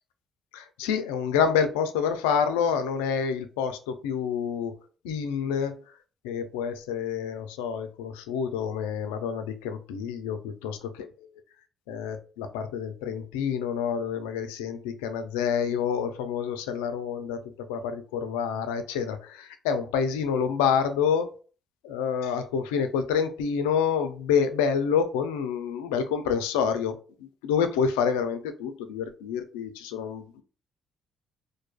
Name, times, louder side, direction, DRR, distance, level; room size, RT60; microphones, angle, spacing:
voice 1, 0.5-4.7 5.0-5.8 6.2-10.8 11.9-17.4 17.7-21.3 21.8-26.9 27.2-30.4, left 7 dB, 85° left, 9 dB, 0.3 m, -28 dB
2.5 x 2.3 x 2.2 m, 0.38 s
hypercardioid pair, 50°, 0 cm